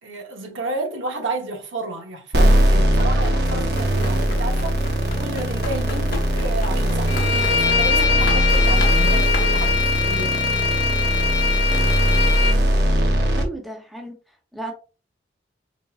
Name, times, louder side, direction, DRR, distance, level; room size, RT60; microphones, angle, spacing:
voice 1, 0.0-10.4, right 2 dB, 90° right, 1.1 m, -31 dB
sound 1, 2.3-13.4, equal, 60° right, 0.9 m, -20 dB
Run, 2.9-9.8, left 2 dB, 50° left, 0.9 m, -34 dB
Bowed string instrument, 7.1-12.6, left 6 dB, 75° left, 0.8 m, -22 dB
voice 2, 13.4-14.7, right 2 dB, ahead, 0.7 m, -35 dB
4.0 x 3.5 x 2.4 m
head